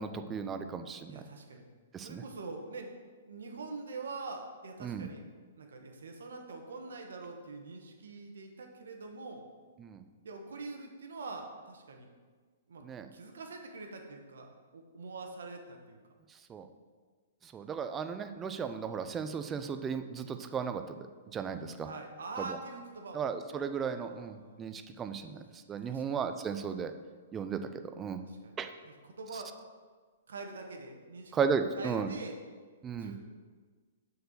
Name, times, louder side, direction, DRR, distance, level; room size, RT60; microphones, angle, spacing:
voice 1, 0.0-1.2 1.9-2.2 4.8-5.1 9.8-10.0 12.8-13.1 16.5-16.6 17.5-20.8 21.3-21.9 23.1-25.4 25.7-26.9 27.3-27.6 28.0-28.2 28.6-28.7 31.3-32.1 32.8-33.1, right 6 dB, 20° right, 8 dB, 0.6 m, -35 dB
voice 2, 1.1-1.6 2.0-2.9 3.3-5.2 5.6-9.4 10.2-12.1 12.7-12.8 13.1-16.0 21.8-23.2 24.0-24.6 25.8-26.2 28.2-28.5 28.8-29.5 30.3-31.3 31.8-32.4 33.0-33.2, right 3 dB, 80° right, 3 dB, 1.4 m, -44 dB
6.5 x 4.6 x 6.8 m, 1.5 s
hypercardioid pair, 135°, 0 cm